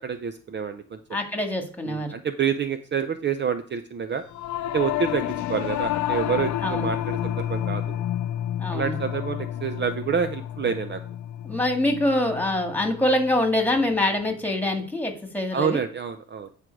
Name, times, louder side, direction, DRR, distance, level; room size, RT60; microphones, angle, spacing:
voice 1, 0.0-1.0 1.8-4.2 4.7-8.0 8.7-11.0 15.5-16.5, right 7 dB, 40° right, 10 dB, 0.6 m, -28 dB
voice 2, 1.1-2.2 6.6-6.9 8.6-9.0 11.4-15.8, left 1 dB, 5° left, 3 dB, 2.1 m, -25 dB
Singing / Musical instrument, 4.3-13.8, left 12 dB, 70° left, 0.5 m, -30 dB
9.6 x 5.0 x 4.7 m, 0.43 s
cardioid pair, 90°, 30 cm